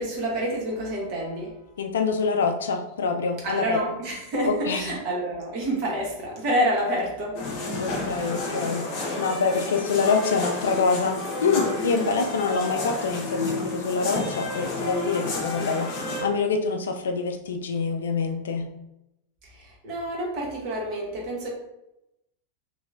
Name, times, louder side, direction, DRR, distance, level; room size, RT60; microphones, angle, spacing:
voice 1, 0.0-1.6 3.4-7.4 19.4-21.5, right 1 dB, 40° right, -2 dB, 1.0 m, -28 dB
voice 2, 1.8-3.8 4.4-5.0 7.8-18.7, left 4 dB, 65° left, 4 dB, 0.3 m, -26 dB
sound 1, 7.3-16.2, left 2 dB, 40° left, 0.7 m, -30 dB
3.0 x 2.8 x 2.5 m, 0.88 s
figure-of-eight pair, 90°, 0 cm